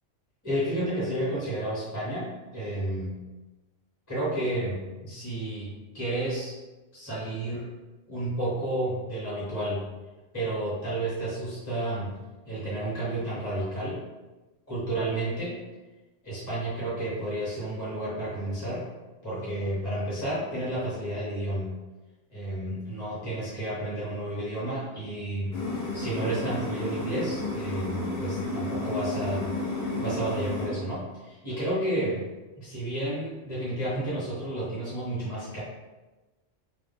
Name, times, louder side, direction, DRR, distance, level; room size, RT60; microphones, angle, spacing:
voice 1, 0.4-3.2 4.1-6.5 6.9-7.6 8.1-9.8 10.3-12.2 12.5-14.0 14.7-15.6 16.2-18.8 19.2-21.7 22.3-32.2 32.6-35.6, right 1 dB, 15° left, -9 dB, 0.9 m, -31 dB
sound 1, 25.5-30.7, left 2 dB, 60° left, 0.9 m, -32 dB
2.3 x 2.1 x 3.5 m, 1.1 s
omnidirectional pair, 1.2 m